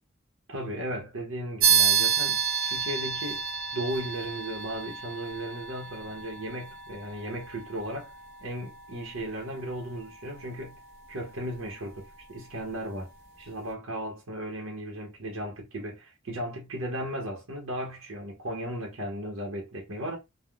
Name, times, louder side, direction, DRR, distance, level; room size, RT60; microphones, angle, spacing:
voice 1, 0.5-3.4 3.7-8.1 8.4-10.8 11.1-13.1 13.4-20.2, right 1 dB, 75° right, 0.8 m, -36 dB
sound 1, 1.6-11.6, right 7 dB, 50° right, 0.8 m, -30 dB
3.3 x 2.1 x 2.3 m
head